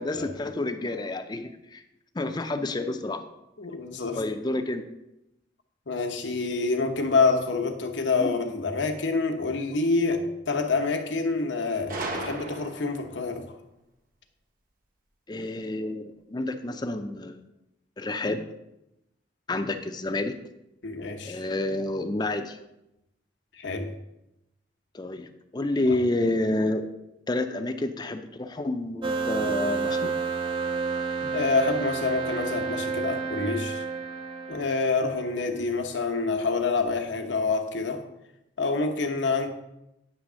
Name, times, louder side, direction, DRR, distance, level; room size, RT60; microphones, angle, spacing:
voice 1, 0.0-1.8 2.2-3.2 4.2-4.9 8.2-8.3 15.3-17.4 18.0-18.4 19.5-20.4 21.3-22.6 24.9-26.9 27.3-30.1, left 2 dB, 25° left, 8 dB, 0.5 m, -29 dB
voice 2, 3.6-4.2 5.9-13.6 20.8-21.4 23.6-23.9 25.8-26.0 31.2-33.8 34.5-38.0 38.6-39.5, left 3 dB, 85° left, 5 dB, 1.0 m, -27 dB
Gunshot gunfire, 11.9-13.1, right 2 dB, 50° right, 1.0 m, -35 dB
sound 1, 29.0-35.4, right 4 dB, 25° right, 0.6 m, -30 dB
9.6 x 3.5 x 6.2 m, 0.88 s
head